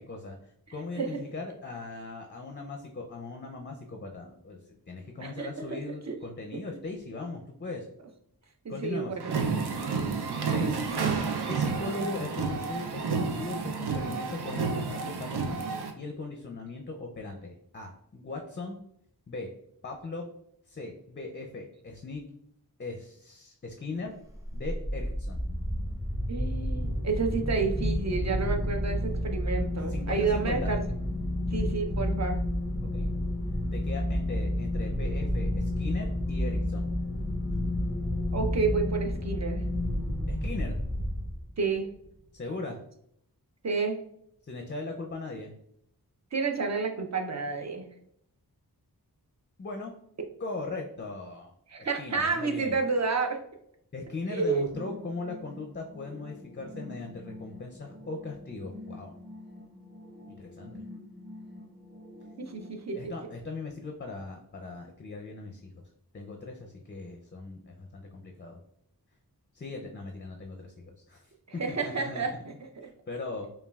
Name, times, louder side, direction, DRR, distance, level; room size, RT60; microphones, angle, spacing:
voice 1, 0.1-4.6 4.9-7.9 8.7-9.2 10.4-10.8 11.5-15.6 16.0-18.8 19.3-19.5 19.8-20.3 20.7-22.2 22.8-24.1 24.5-25.4 29.9-30.7 32.8-33.1 33.7-36.9 40.3-40.8 42.3-42.8 44.4-45.5 49.6-49.9 50.4-51.5 51.8-52.8 53.9-59.2 60.3-60.8 62.9-65.8 66.1-68.6 69.5-71.3 71.7-72.2 72.8-73.5, left 3 dB, 30° left, 2 dB, 0.4 m, -39 dB
voice 2, 8.6-9.3 10.4-11.1 26.3-30.8 31.5-32.4 38.3-39.6 41.6-41.9 43.6-44.0 46.3-47.9 51.7-53.4 54.3-54.7 62.4-63.1 71.6-72.3, right 4 dB, 45° right, 3 dB, 0.6 m, -30 dB
sound 1, 9.2-15.9, right 5 dB, 90° right, 0.5 m, -30 dB
sound 2, 24.3-41.7, left 1 dB, 10° right, 0.7 m, -30 dB
sound 3, 54.7-62.7, left 2 dB, 30° right, 1.1 m, -46 dB
5.2 x 2.3 x 2.3 m, 0.73 s
wide cardioid pair, 50°, 38 cm